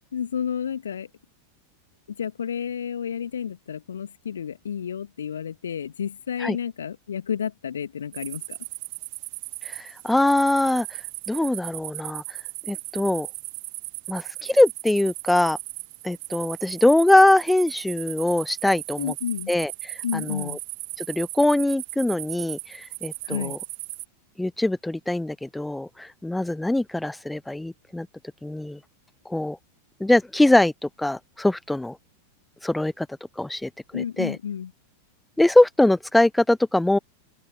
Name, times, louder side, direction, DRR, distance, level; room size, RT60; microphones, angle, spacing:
voice 1, 0.1-1.1 2.2-8.6 19.0-19.5 20.0-20.6 23.2-23.6 33.9-34.7, left 8 dB, 65° left, 2.0 m, -31 dB
sound 1, 8.1-24.0, right 40 dB or more, 45° right, 2.9 m, -37 dB
voice 2, 9.6-11.0 11.3-12.2 12.7-13.3 14.1-15.6 16.0-19.1 19.5-20.6 21.0-23.6 24.4-28.1 28.4-28.8 29.3-29.6 30.0-32.0 32.6-33.1 33.4-34.4 35.4-37.0, left 1 dB, 5° left, 0.6 m, -22 dB
figure-of-eight pair, 90°, 0 cm